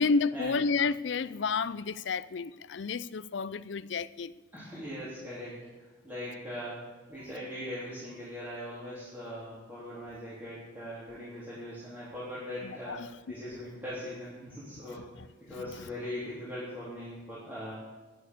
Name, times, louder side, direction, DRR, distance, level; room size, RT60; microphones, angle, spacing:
voice 1, 0.0-4.3 12.6-13.1 15.8-15.9, left 4 dB, 70° left, 0.5 m, -30 dB
voice 2, 4.5-6.8 7.1-15.1 15.4-17.8, equal, 10° right, 3.4 m, -40 dB
11.0 x 11.0 x 6.9 m
head